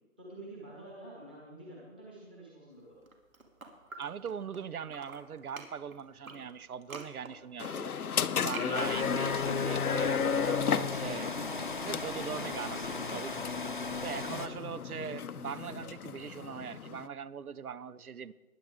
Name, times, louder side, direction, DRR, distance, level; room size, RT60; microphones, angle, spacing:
voice 1, 0.2-3.0, right 1 dB, 5° right, -5 dB, 1.2 m, -48 dB
sound 1, 2.9-4.6 4.9-10.5, right 3 dB, 70° right, 2.6 m, -49 dB
voice 2, 4.0-7.9 8.4-11.4 11.8-18.3, right 7 dB, 85° right, 17 dB, 0.7 m, -41 dB
sound 2, 7.6-17.1, left 7 dB, 90° left, 0.7 m, -34 dB
sound 3, 8.7-14.5, left 2 dB, 35° left, 0.7 m, -38 dB
20.0 x 10.5 x 3.6 m, 1.1 s
figure-of-eight pair, 170°, 43 cm